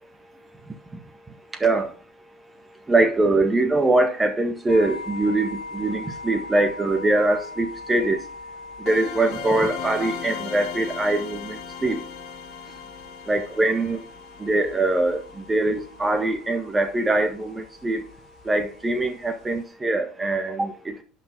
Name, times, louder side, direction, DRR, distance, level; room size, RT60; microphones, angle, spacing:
voice 1, 2.9-5.5 5.7-8.2 8.8-12.0 13.3-14.0 14.4-15.2 15.5-18.0 18.5-20.9, right 2 dB, 15° right, 7 dB, 1.6 m, -22 dB
sound 1, 4.7-19.6, left 2 dB, 40° left, 3.2 m, -42 dB
sound 2, 8.9-15.5, left 8 dB, 60° left, 2.2 m, -37 dB
10.0 x 5.7 x 3.7 m, 0.35 s
cardioid pair, 125°, 0 cm